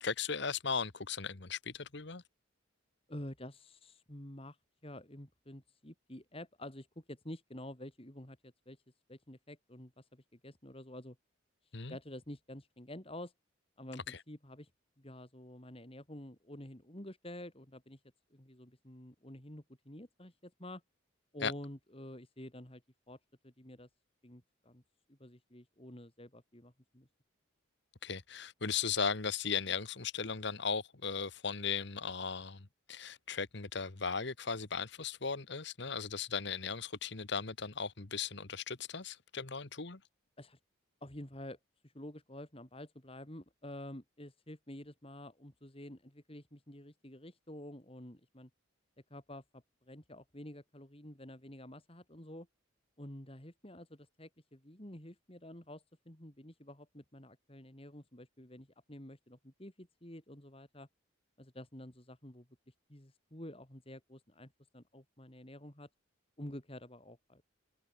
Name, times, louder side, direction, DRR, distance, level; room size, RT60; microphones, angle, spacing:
voice 1, 0.0-2.2 11.7-12.0 14.1-14.2 21.4-21.5 28.0-40.0, left 5 dB, 55° left, 1.4 m, -37 dB
voice 2, 3.1-4.6 4.8-8.8 9.1-11.2 11.9-13.3 13.8-14.7 15.0-18.0 18.3-20.8 21.3-22.8 23.1-23.2 23.4-23.9 24.2-24.8 25.1-27.1 40.4-40.6 41.0-41.6 41.8-48.5 49.1-52.5 53.0-60.9 61.4-62.5 62.9-65.9 66.4-67.4, left 1 dB, 25° left, 2.9 m, -49 dB
head